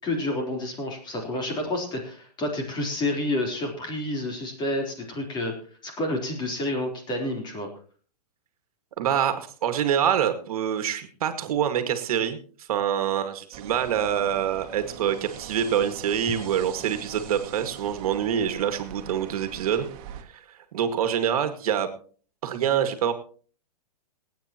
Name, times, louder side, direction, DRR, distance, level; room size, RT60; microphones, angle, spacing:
voice 1, 0.0-5.5 5.8-7.7, left 1 dB, 20° left, 2 dB, 3.7 m, -29 dB
voice 2, 9.0-12.4 12.7-19.9 20.2-20.4 20.7-21.9 22.4-23.1, right 9 dB, 65° right, 9 dB, 2.0 m, -25 dB
sound 1, 13.5-20.2, right 10 dB, 40° right, 2.0 m, -42 dB
27.0 x 9.0 x 3.0 m, 0.41 s
hypercardioid pair, 140°, 20 cm